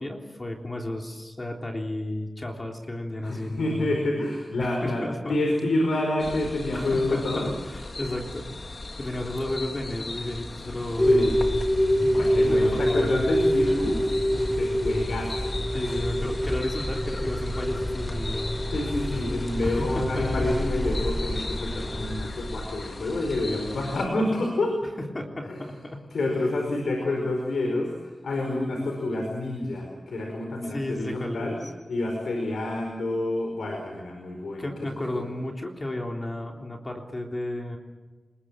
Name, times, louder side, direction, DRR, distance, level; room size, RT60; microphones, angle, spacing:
voice 1, 0.0-3.9 4.6-5.6 6.7-11.4 11.9-13.1 15.7-18.6 19.6-20.5 25.0-26.1 30.7-31.7 34.6-37.8, left 1 dB, 30° left, 1 dB, 3.5 m, -33 dB
voice 2, 3.2-7.5 10.6-10.7 11.0-11.4 12.1-15.5 18.7-24.8 25.4-25.6 26.1-31.6 31.9-34.9 35.1-35.3, left 2 dB, 90° left, 2 dB, 4.9 m, -28 dB
sound 1, 6.2-24.1, left 2 dB, 55° left, 2.6 m, -38 dB
sound 2, 11.0-22.6, equal, 10° left, 3.1 m, -26 dB
29.0 x 21.0 x 7.6 m, 1.2 s
cardioid pair, 60°, 0 cm